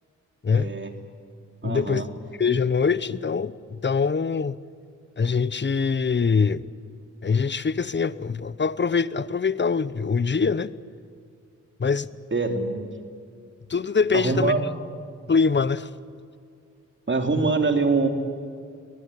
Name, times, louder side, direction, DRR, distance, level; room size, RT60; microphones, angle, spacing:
voice 1, 0.5-0.9 1.6-2.1 12.3-12.9 14.1-14.7 17.1-18.1, right 3 dB, 40° right, 3.0 m, -24 dB
voice 2, 1.6-2.0 2.4-3.5 3.8-4.6 5.2-6.6 7.2-10.7 11.8-12.1 13.7-14.5 15.3-15.9, left 5 dB, 40° left, 0.9 m, -23 dB
23.0 x 18.5 x 9.8 m
cardioid pair, 65°, 30 cm